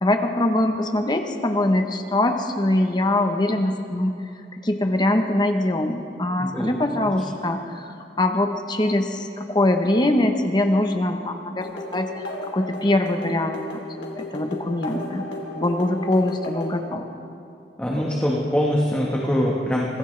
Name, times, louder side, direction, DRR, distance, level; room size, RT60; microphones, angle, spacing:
voice 1, 0.0-4.1 4.5-7.9 8.2-12.2 12.5-13.6 14.2-15.2 15.6-17.1, left 1 dB, 25° left, 5 dB, 1.0 m, -23 dB
voice 2, 6.4-7.1 17.8-20.0, equal, 10° left, -4 dB, 1.4 m, -24 dB
sound 1, 11.6-16.8, left 2 dB, 85° left, 3.0 m, -35 dB
25.0 x 15.5 x 3.3 m, 2.5 s
head